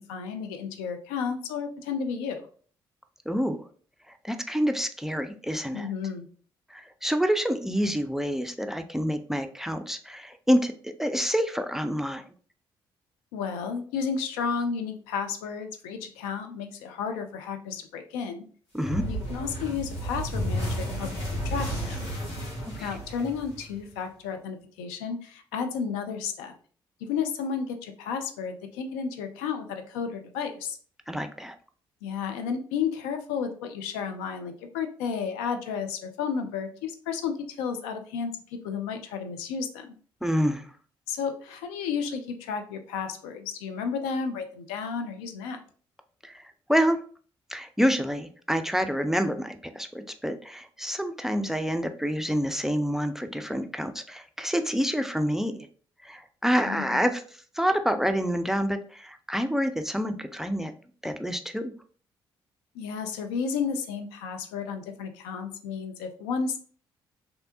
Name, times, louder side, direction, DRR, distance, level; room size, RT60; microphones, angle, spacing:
voice 1, 0.1-2.5 5.7-6.3 13.3-18.5 19.1-21.1 21.4-22.1 22.8-26.5 27.0-30.8 32.0-38.3 38.6-39.9 41.1-45.6 56.7-57.1 62.7-66.6, left 6 dB, 75° left, 7 dB, 0.4 m, -32 dB
voice 2, 3.3-3.6 4.2-5.9 6.7-12.2 18.7-19.1 22.8-22.9 31.1-31.5 40.2-40.7 46.2-46.4 46.7-47.0 47.5-55.6 56.0-57.2 57.5-60.7 61.0-61.7, equal, 5° right, 8 dB, 0.4 m, -27 dB
sound 1, 18.8-24.0, equal, 60° left, 1.6 m, -32 dB
3.2 x 2.6 x 2.7 m, 0.43 s
hypercardioid pair, 45°, 12 cm